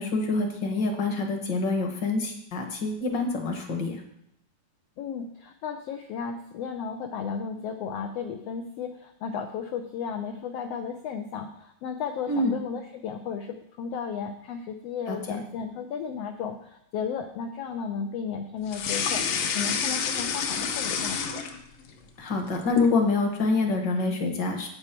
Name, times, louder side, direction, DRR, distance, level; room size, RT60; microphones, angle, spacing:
voice 1, 0.0-4.0 12.3-12.6 15.1-15.4 22.2-24.7, left 3 dB, 50° left, 4 dB, 1.4 m, -26 dB
voice 2, 5.0-19.3 19.5-21.4, left 6 dB, 85° left, 6 dB, 1.4 m, -34 dB
sound 1, 18.7-21.9 22.3-23.0, left 6 dB, 70° left, 1.6 m, -29 dB
10.5 x 8.3 x 4.4 m, 0.76 s
omnidirectional pair, 3.7 m